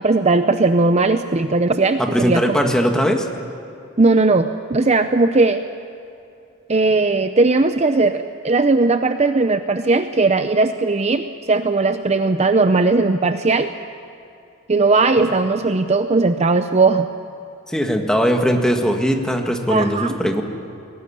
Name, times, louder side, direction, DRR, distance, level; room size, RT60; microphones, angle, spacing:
voice 1, 0.0-2.4 4.0-5.6 6.7-13.7 14.7-17.1 19.7-20.2, right 3 dB, 30° right, 9 dB, 0.6 m, -18 dB
voice 2, 2.0-3.3 17.7-20.4, equal, 5° left, 3 dB, 1.8 m, -19 dB
21.5 x 18.0 x 10.0 m, 2.7 s
head